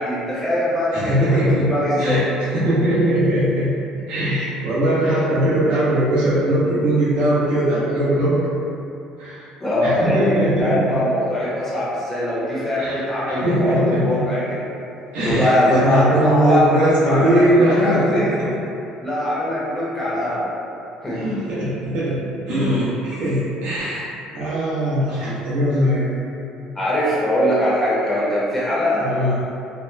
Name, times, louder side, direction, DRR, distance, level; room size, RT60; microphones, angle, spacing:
voice 1, 0.0-2.2 9.6-14.6 15.2-18.3 19.0-20.5 21.0-21.2 26.7-29.0, left 1 dB, 15° left, -9 dB, 0.7 m, -21 dB
voice 2, 0.9-1.7 2.0-2.2 2.5-3.7 4.1-8.4 9.2-9.5 9.8-11.0 12.8-14.3 15.1-18.2 21.1-22.2 22.5-24.1 24.3-26.2 29.0-29.4, right 1 dB, 70° right, -9 dB, 0.9 m, -20 dB
2.8 x 2.1 x 2.3 m, 2.7 s
cardioid pair, 120°, 2 cm